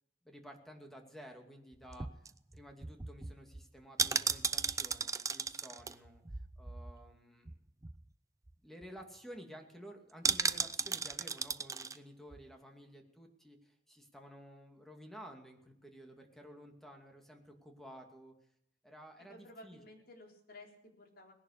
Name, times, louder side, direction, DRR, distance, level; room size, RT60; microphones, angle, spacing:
voice 1, 0.2-2.2 2.5-6.2 6.6-7.6 8.6-18.3 18.8-19.8, equal, ahead, 3 dB, 2.5 m, -53 dB
sound 1, 1.7-7.2 7.5-7.6 7.8-8.1 8.5-8.6 8.8-9.2 10.2-12.0 12.3-12.4, right 5 dB, 20° right, 0.5 m, -36 dB
voice 2, 19.3-21.3, left 1 dB, 55° left, 1 dB, 4.0 m, -54 dB
19.0 x 11.0 x 6.7 m, 0.75 s
head